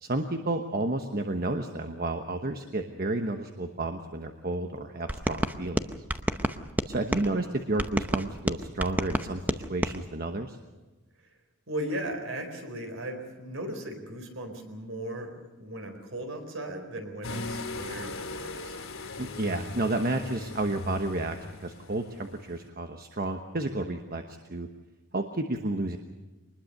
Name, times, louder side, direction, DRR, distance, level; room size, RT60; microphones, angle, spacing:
voice 1, 0.0-5.8 6.9-10.6 19.2-24.7 25.1-26.0, right 2 dB, 40° right, 6 dB, 1.1 m, -31 dB
sound 1, 5.1-7.3 7.8-10.0, right 1 dB, 10° right, 0.7 m, -30 dB
voice 2, 11.7-18.8, right 1 dB, 60° right, 5 dB, 4.4 m, -37 dB
sound 2, 17.2-22.7, left 2 dB, 65° left, 2.8 m, -39 dB
23.5 x 20.5 x 6.7 m, 1.2 s
head